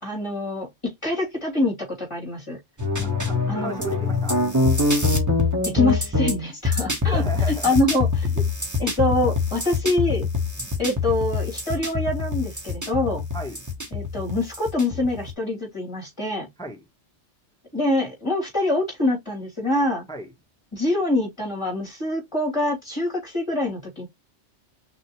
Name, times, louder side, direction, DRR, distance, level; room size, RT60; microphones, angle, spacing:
voice 1, 0.0-0.7 1.0-2.6 3.5-3.8 5.7-7.2 7.6-8.3 8.8-10.3 10.8-13.2 13.9-16.5 17.7-20.1 20.7-24.1, left 2 dB, 25° left, 2.9 m, -25 dB
sound 1, 2.8-15.3, left 3 dB, 15° right, 1.2 m, -24 dB
voice 2, 3.0-4.4 7.0-7.8 8.3-8.4 10.6-10.8 13.3-13.6 16.6-16.8 20.1-20.3, right 1 dB, 5° left, 1.0 m, -35 dB
5.9 x 2.8 x 3.1 m
omnidirectional pair, 1.2 m